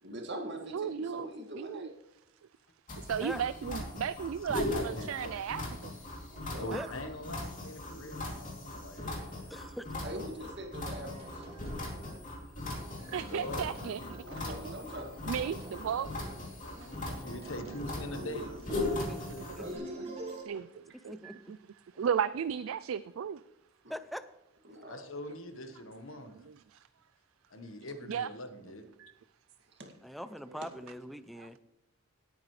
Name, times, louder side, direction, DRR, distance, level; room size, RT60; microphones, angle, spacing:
voice 1, 0.0-1.9 6.3-6.7 10.0-11.6 14.3-15.4 18.1-20.1 23.8-23.9 24.6-25.0 29.8-29.9 30.6-30.7, right 1 dB, 55° right, 2 dB, 2.2 m, -43 dB
voice 2, 0.7-1.9 3.1-5.9 6.7-6.9 13.1-14.0 14.6-14.8 15.3-16.1 19.7-19.8 20.5-20.7 21.0-21.6 22.0-23.4 28.1-28.3 29.0-29.1 30.5-30.6, right 8 dB, 75° right, 15 dB, 0.3 m, -34 dB
sound 1, 2.9-19.8, left 2 dB, 40° left, 2.9 m, -39 dB
voice 3, 3.0-3.4 6.7-6.9 9.5-10.0 19.0-19.2 19.6-19.7 21.1-21.4 23.9-24.2 30.0-31.6, equal, ahead, 12 dB, 0.4 m, -42 dB
voice 4, 4.7-5.3 6.6-9.6 13.0-14.5 16.6-18.5 18.8-19.7 24.9-26.3 27.5-28.8, left 1 dB, 70° left, 7 dB, 1.3 m, -43 dB
sound 2, 11.0-12.3 12.6-14.3 14.7-16.4 16.7-18.4 18.7-20.4, right 1 dB, 30° right, 2.4 m, -47 dB
18.0 x 8.9 x 3.2 m, 0.92 s
head